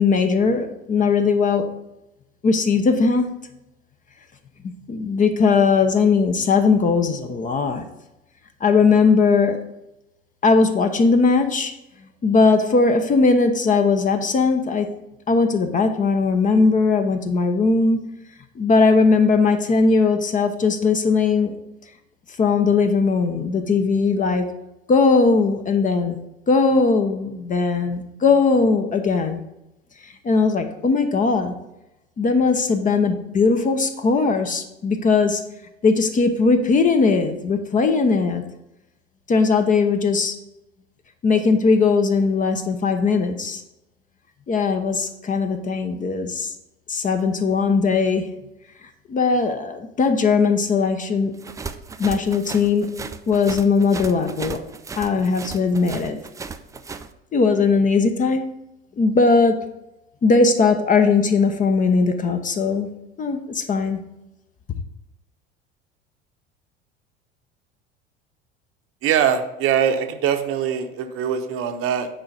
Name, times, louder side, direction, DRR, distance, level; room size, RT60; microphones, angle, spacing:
voice 1, 0.0-1.7 2.4-3.3 4.6-7.9 8.6-9.6 10.4-11.7 12.2-14.9 15.3-18.0 18.6-21.6 22.4-24.5 24.9-26.2 26.5-29.4 30.0-31.5 32.2-35.4 35.8-38.4 39.3-40.4 41.2-43.6 44.5-46.5 46.9-48.3 49.1-51.3 52.0-52.9 53.3-54.6 55.0-56.2 57.3-58.4 59.0-59.6 60.2-62.9 63.2-64.0, left 4 dB, 25° left, 7 dB, 0.8 m, -19 dB
sound 1, 51.4-57.1, right 5 dB, 10° right, 0.4 m, -35 dB
voice 2, 69.0-72.1, right 8 dB, 45° right, 6 dB, 1.0 m, -22 dB
8.9 x 4.8 x 5.2 m, 0.91 s
figure-of-eight pair, 70°, 32 cm